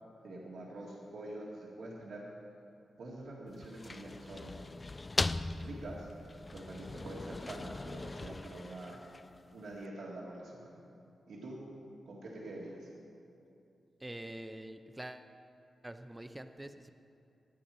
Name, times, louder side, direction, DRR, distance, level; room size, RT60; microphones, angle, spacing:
voice 1, 0.2-2.2 3.0-4.6 5.5-6.1 6.5-9.0 9.5-10.8 11.3-11.6 12.1-12.9, right 1 dB, 80° right, -3 dB, 1.9 m, -45 dB
sound 1, 3.5-9.5, left 2 dB, 30° left, 0.3 m, -39 dB
voice 2, 14.0-15.3 15.8-16.9, right 1 dB, 15° right, 8 dB, 0.6 m, -45 dB
17.0 x 9.1 x 4.3 m, 2.6 s
cardioid pair, 55°, 0 cm